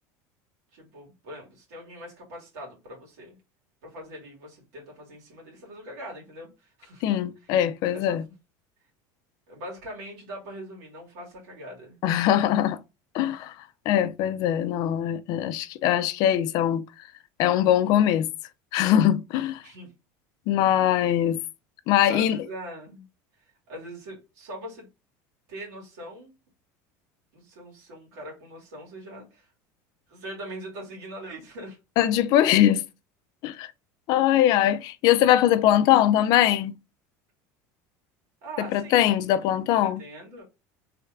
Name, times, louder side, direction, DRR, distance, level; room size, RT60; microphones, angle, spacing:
voice 1, 0.7-3.4 3.8-7.0 7.4-7.5 7.9-8.2 9.5-12.0 12.2-12.5 13.2-13.4 19.6-19.9 20.9-21.0 22.1-23.0 23.7-24.9 25.5-26.3 27.3-29.5 30.1-31.8 38.4-39.1 39.8-40.4, right 1 dB, 90° right, 1.9 m, -41 dB
voice 2, 7.0-8.2 12.0-12.8 13.1-13.5 13.9-16.8 17.4-18.3 18.7-19.6 20.5-21.4 21.9-22.4 32.0-32.8 33.4-33.7 34.1-36.7 38.6-40.0, left 11 dB, 50° left, 0.4 m, -21 dB
3.2 x 2.4 x 3.3 m
cardioid pair, 150°, 8 cm